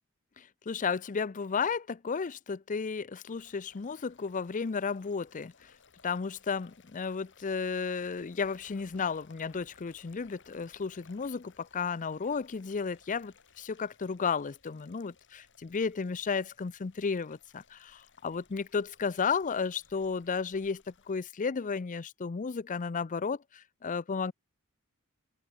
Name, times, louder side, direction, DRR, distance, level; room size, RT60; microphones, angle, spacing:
voice 1, 0.4-5.5 6.0-24.3, left 5 dB, 35° left, 0.5 m, -33 dB
sound 1, 3.2-21.2, left 5 dB, 60° left, 7.1 m, -62 dB
head